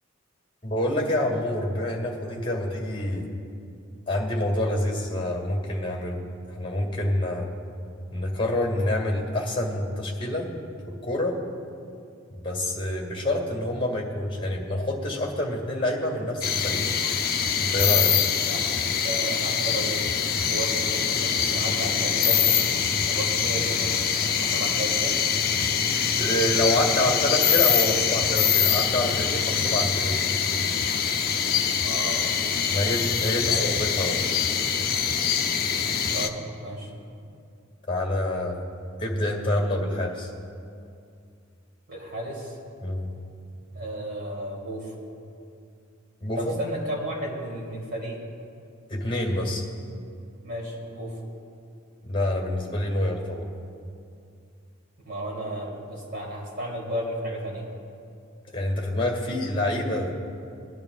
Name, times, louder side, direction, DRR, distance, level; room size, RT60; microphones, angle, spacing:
voice 1, 0.6-3.3 4.1-7.5 8.1-10.5 11.0-11.4 12.3-16.9 17.6-18.1 26.2-30.3 32.7-34.2 37.9-38.6 39.0-40.3 42.8-43.1 46.2-46.7 48.9-49.6 52.1-53.5 58.5-60.1, left 1 dB, 25° left, 0 dB, 2.0 m, -27 dB
sound 1, 16.4-36.3, left 7 dB, 45° left, 0.6 m, -24 dB
voice 2, 18.4-18.7 19.0-20.1 20.4-22.4 23.1-25.1 31.8-32.2 32.7-32.9 33.4-33.8 36.1-36.3 36.6-36.9 41.9-42.6 43.7-44.9 46.4-48.2 50.4-51.1 55.0-57.7, right 1 dB, 50° right, -4 dB, 3.1 m, -33 dB
20.5 x 10.5 x 2.4 m, 2.5 s
head